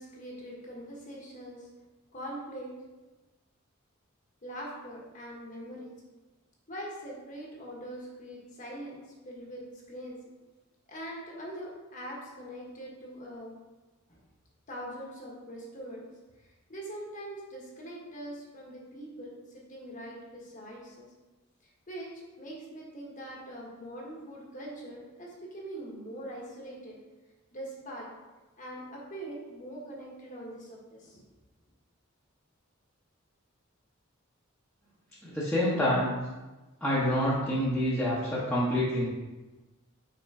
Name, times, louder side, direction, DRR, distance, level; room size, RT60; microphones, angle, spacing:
voice 1, 0.0-1.7 2.1-2.7 4.4-5.9 6.7-10.2 10.9-13.5 14.7-16.0 16.7-21.1 21.9-27.0 27.5-28.1 28.6-31.2, right 1 dB, 40° left, -2 dB, 1.3 m, -42 dB
voice 2, 35.2-36.1 36.8-39.1, equal, 5° left, -11 dB, 1.0 m, -27 dB
5.5 x 3.7 x 4.8 m, 1.2 s
head